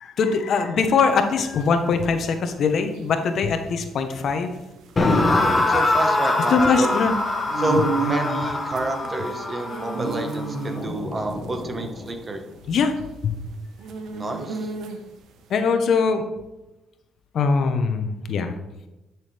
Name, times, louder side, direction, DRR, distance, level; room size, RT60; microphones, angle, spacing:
voice 1, 0.0-4.5 6.5-7.1 12.7-12.9 13.2-13.4 15.5-16.3 17.3-18.5, left 5 dB, 65° left, 7 dB, 1.0 m, -22 dB
sound 1, 1.1-15.3, right 4 dB, 80° right, 1.0 m, -33 dB
sound 2, 5.0-12.1, left 2 dB, 30° left, 1.6 m, -24 dB
voice 2, 5.2-7.0 7.6-12.4 14.1-14.7, right 2 dB, 30° right, 5 dB, 1.3 m, -28 dB
10.5 x 6.2 x 3.4 m, 0.99 s
cardioid pair, 90°, 0 cm